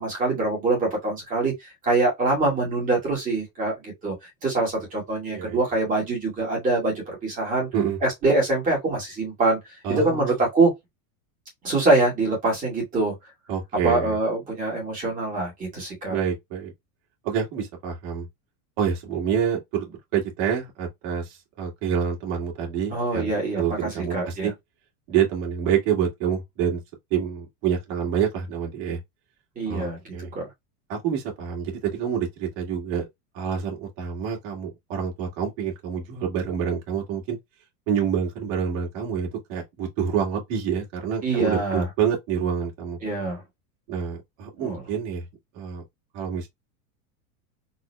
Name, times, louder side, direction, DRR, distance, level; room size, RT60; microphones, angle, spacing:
voice 1, 0.0-4.1 4.4-7.7 8.0-9.6 9.9-10.7 11.6-13.1 13.8-16.2 22.9-24.5 29.6-30.0 30.3-30.5 41.2-41.9 43.0-43.4 44.6-44.8, right 2 dB, 20° right, 2.3 m, -24 dB
voice 2, 5.3-5.6 7.7-8.0 9.8-10.3 13.5-14.2 16.1-16.7 17.2-18.3 18.8-24.5 25.1-26.8 27.1-29.0 29.7-30.3 30.9-33.1 33.3-37.4 37.9-43.0 43.9-45.2 45.5-45.8 46.1-46.5, right 8 dB, 45° right, 1.9 m, -27 dB
4.1 x 3.6 x 2.2 m
supercardioid pair, 170°, 45 cm